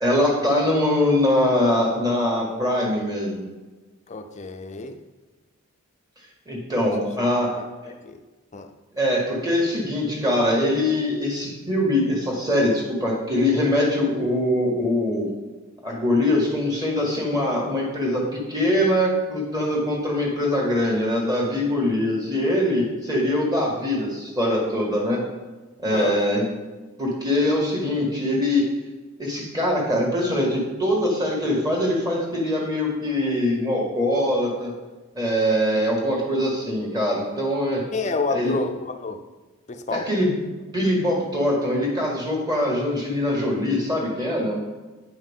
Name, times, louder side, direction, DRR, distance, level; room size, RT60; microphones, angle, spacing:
voice 1, 0.0-3.4 6.5-7.5 8.9-15.3 15.8-25.2 25.8-26.4 27.0-28.7 29.2-34.7 35.2-37.8 38.3-38.5 39.9-40.3 40.7-44.6, left 1 dB, 20° right, -2 dB, 1.7 m, -23 dB
voice 2, 4.1-5.0 6.7-6.9 7.5-8.2 8.5-8.7 25.9-26.2 37.9-39.2 39.7-40.1, left 3 dB, 30° left, 7 dB, 0.5 m, -29 dB
9.5 x 5.6 x 3.6 m, 1.2 s
head